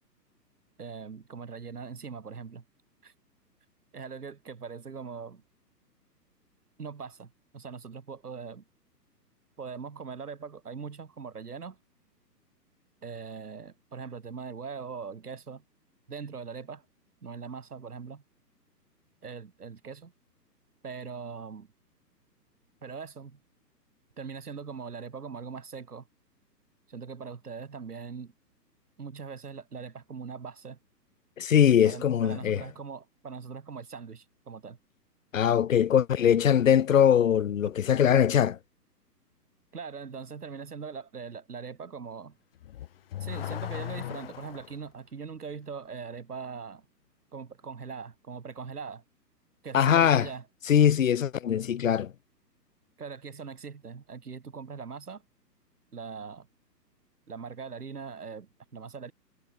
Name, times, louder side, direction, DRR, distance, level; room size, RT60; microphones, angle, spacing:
voice 1, 0.8-2.6 3.0-3.1 3.9-5.4 6.8-8.6 9.6-11.8 13.0-15.6 16.1-16.8 17.2-18.2 19.2-20.1 20.8-21.7 22.8-23.4 24.2-26.1 26.9-28.3 29.0-30.8 31.8-34.8 39.7-42.4 43.2-46.8 47.3-49.0 49.6-50.5 53.0-55.2 55.9-56.5 57.3-59.1, right 5 dB, 65° right, 6.1 m, -41 dB
voice 2, 31.4-32.6 35.3-38.6 49.7-50.3 50.7-52.1, left 9 dB, 50° left, 0.7 m, -22 dB
Car / Accelerating revving vroom, 42.6-44.8, left 12 dB, 35° left, 1.4 m, -37 dB
figure-of-eight pair, 125°, 50 cm